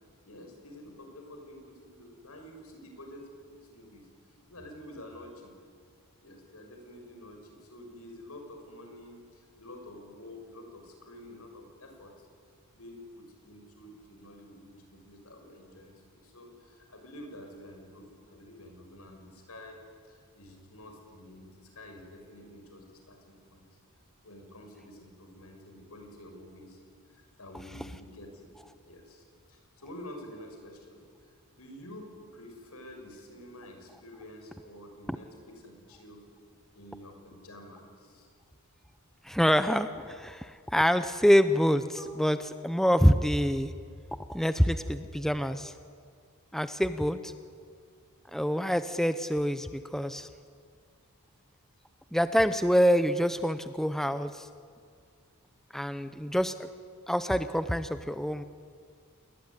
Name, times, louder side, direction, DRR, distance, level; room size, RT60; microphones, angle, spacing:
voice 1, 0.2-4.1 4.5-5.5 6.2-12.3 12.7-19.8 20.1-23.7 24.2-26.8 27.1-28.5 28.8-31.0 31.5-36.2 36.7-38.3 41.9-42.0, left 1 dB, 75° left, 3 dB, 6.4 m, -49 dB
voice 2, 39.2-43.7 44.3-45.7 46.5-47.3 48.3-50.3 52.1-54.5 55.7-56.7 57.1-58.4, equal, ahead, 10 dB, 0.7 m, -26 dB
28.5 x 20.5 x 9.9 m, 2.1 s
head